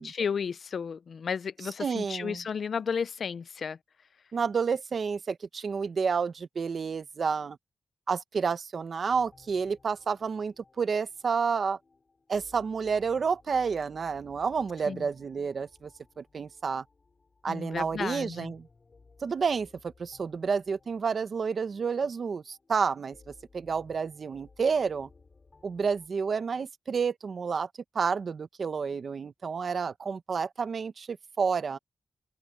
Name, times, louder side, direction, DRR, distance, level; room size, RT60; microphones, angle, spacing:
voice 1, 0.0-3.8 14.9-15.0 17.5-18.5, left 6 dB, 75° left, 0.4 m, -33 dB
voice 2, 1.8-2.4 4.3-7.6 8.1-11.8 12.3-15.9 16.2-16.8 17.4-18.7 19.2-25.1 25.6-27.7 27.9-31.8, right 5 dB, 65° right, 1.0 m, -30 dB
sound 1, 9.1-26.1, left 4 dB, 40° left, 7.3 m, -60 dB
open air
wide cardioid pair, 110°, 0 cm